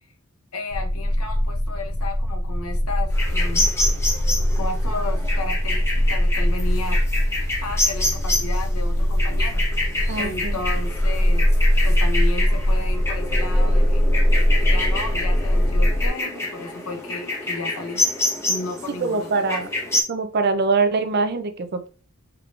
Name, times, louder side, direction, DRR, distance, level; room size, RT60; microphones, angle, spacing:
voice 1, 0.5-3.7 4.5-9.6 10.2-11.5 11.8-14.1 14.6-18.0 18.5-19.6, left 3 dB, 80° left, 3 dB, 0.9 m, -33 dB
sound 1, 0.7-16.1, equal, 35° left, 0.6 m, -21 dB
sound 2, 3.1-20.0, left 2 dB, 10° left, 1.0 m, -28 dB
voice 2, 10.1-10.6 19.0-19.7 20.1-21.9, right 4 dB, 45° right, 8 dB, 0.5 m, -23 dB
4.4 x 3.6 x 2.4 m, 0.37 s
head